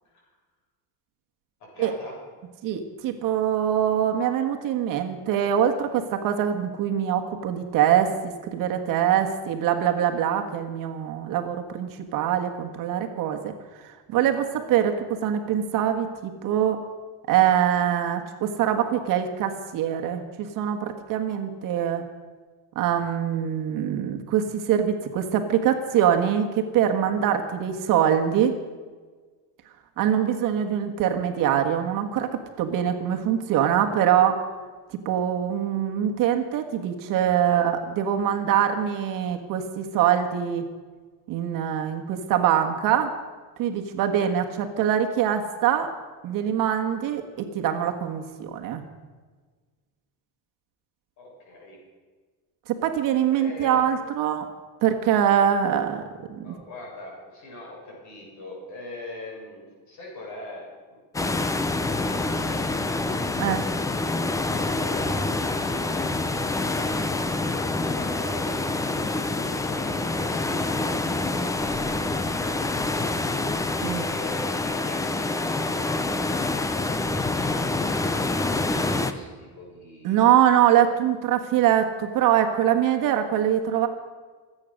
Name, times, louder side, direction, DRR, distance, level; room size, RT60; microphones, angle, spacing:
voice 1, 1.6-2.2 37.3-37.6 51.2-51.8 53.2-53.8 56.4-61.0 61.8-63.0 64.5-67.0 67.5-69.0 69.4-73.2 73.8-78.1 78.5-80.4, left 2 dB, 50° left, -2 dB, 6.8 m, -42 dB
voice 2, 2.6-13.5 13.8-16.8 17.3-22.0 22.7-28.5 30.0-34.4 34.9-40.7 41.3-43.1 43.6-45.9 46.2-48.8 52.7-54.5 54.8-56.0 56.4-56.5 63.4-63.6 73.8-74.0 80.0-83.9, right 9 dB, 55° right, 5 dB, 1.5 m, -23 dB
sound 1, 61.1-79.1, left 2 dB, 10° left, 0.5 m, -26 dB
25.0 x 8.8 x 6.5 m, 1.4 s
cardioid pair, 175°, 39 cm